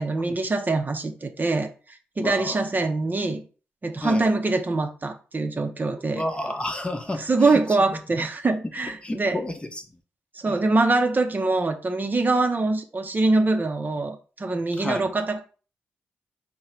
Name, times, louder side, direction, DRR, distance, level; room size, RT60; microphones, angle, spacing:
voice 1, 0.0-3.4 3.8-6.2 7.1-9.4 10.3-15.4, right 3 dB, 35° right, 0.6 m, -24 dB
voice 2, 2.2-2.6 4.0-4.3 6.1-7.2 7.5-7.6 9.0-9.8 10.5-10.6 14.8-15.0, left 1 dB, 20° left, 0.8 m, -30 dB
3.7 x 2.2 x 4.4 m
supercardioid pair, 40°, 5 cm